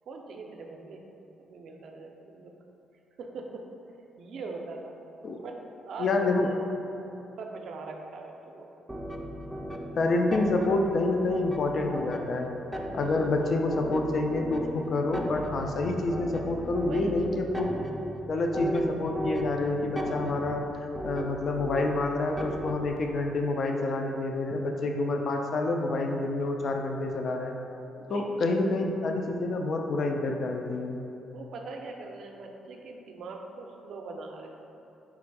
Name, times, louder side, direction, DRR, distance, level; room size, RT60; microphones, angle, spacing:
voice 1, 0.1-1.0 1.4-2.5 3.2-3.6 4.2-4.9 5.4-5.6 5.8-6.6 7.4-8.7 13.1-13.3 16.8-17.1 28.0-28.6 31.3-34.6, right 3 dB, 65° right, 2 dB, 0.4 m, -41 dB
voice 2, 6.0-6.5 10.0-12.5 12.9-17.7 18.3-20.6 21.0-27.5 28.1-31.0, left 2 dB, 55° left, 3 dB, 0.4 m, -28 dB
sound 1, 8.9-23.0, equal, 10° right, 0.4 m, -37 dB
3.5 x 2.5 x 4.6 m, 2.8 s
cardioid pair, 90°, 0 cm